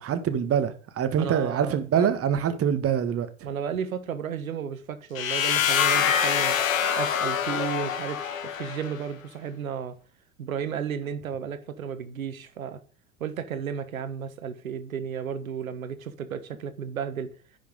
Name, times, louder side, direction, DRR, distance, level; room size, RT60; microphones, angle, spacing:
voice 1, 0.0-3.3, right 8 dB, 35° right, 1.6 m, -25 dB
voice 2, 1.2-2.1 2.4-2.6 3.4-6.6 7.0-10.0 10.4-12.8 13.2-17.3, right 7 dB, 80° right, 1.3 m, -33 dB
sound 1, 5.2-9.0, left 8 dB, 75° left, 1.8 m, -25 dB
10.5 x 5.9 x 5.2 m
hypercardioid pair, 80°, 41 cm